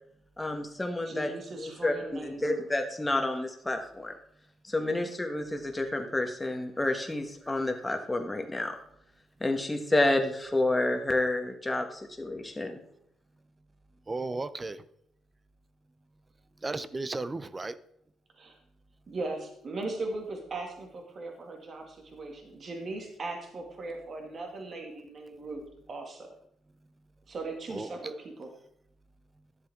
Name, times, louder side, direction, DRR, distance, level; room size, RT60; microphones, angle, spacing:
voice 1, 0.4-1.3 1.6-4.1 4.7-8.7 9.4-12.8, left 2 dB, 15° left, 4 dB, 1.5 m, -29 dB
voice 2, 1.0-2.7 4.8-5.0 18.4-18.6 19.1-26.3 27.3-28.5, right 2 dB, 45° right, 2 dB, 2.3 m, -39 dB
voice 3, 14.1-14.8 16.6-17.8 27.7-28.1, right 3 dB, 25° right, 14 dB, 0.6 m, -35 dB
11.5 x 7.4 x 3.7 m, 0.71 s
cardioid pair, 90°, 0 cm